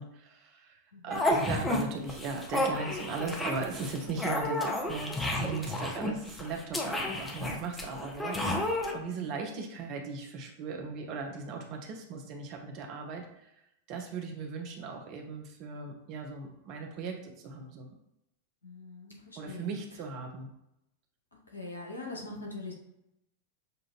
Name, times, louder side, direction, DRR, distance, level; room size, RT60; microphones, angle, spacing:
voice 1, 0.0-13.5 13.9-17.9 19.4-20.5, right 4 dB, 40° right, 3 dB, 0.9 m, -38 dB
sound 1, 1.1-1.8 2.1-8.9, left 1 dB, 10° left, 0.7 m, -31 dB
voice 2, 9.1-9.4 18.6-19.7 21.5-22.7, left 2 dB, 80° left, -1 dB, 1.2 m, -42 dB
6.7 x 2.5 x 2.9 m, 0.84 s
figure-of-eight pair, 90°, 0 cm